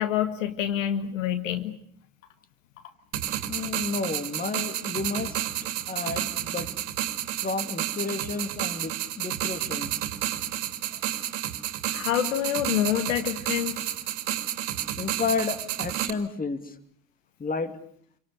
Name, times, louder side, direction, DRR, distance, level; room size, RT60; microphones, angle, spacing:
voice 1, 0.0-1.8 11.9-13.8, left 11 dB, 70° left, 10 dB, 1.7 m, -27 dB
sound 1, 3.1-16.1, right 13 dB, 65° right, 2.5 m, -31 dB
voice 2, 3.5-5.5 5.9-6.7 7.4-9.9 15.0-16.7 17.4-17.7, left 4 dB, 20° left, 9 dB, 2.7 m, -31 dB
28.5 x 24.5 x 6.6 m, 0.63 s
figure-of-eight pair, 70°, 40 cm